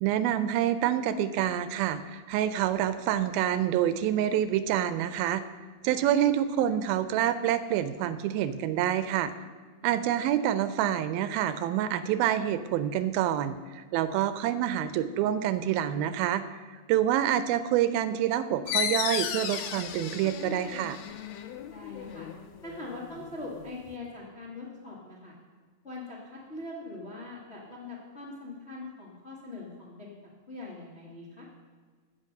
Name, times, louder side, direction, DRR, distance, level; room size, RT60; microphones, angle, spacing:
voice 1, 0.0-5.4 5.8-9.3 9.8-16.4 16.9-21.0, right 11 dB, 80° right, 13 dB, 2.3 m, -27 dB
voice 2, 9.8-10.3 21.7-22.3 22.6-25.3 25.8-30.1 30.5-31.4, left 2 dB, 40° left, -4 dB, 0.9 m, -42 dB
sound 1, 18.7-23.9, left 8 dB, 90° left, 2.7 m, -35 dB
16.0 x 6.0 x 6.5 m, 1.5 s
omnidirectional pair, 4.4 m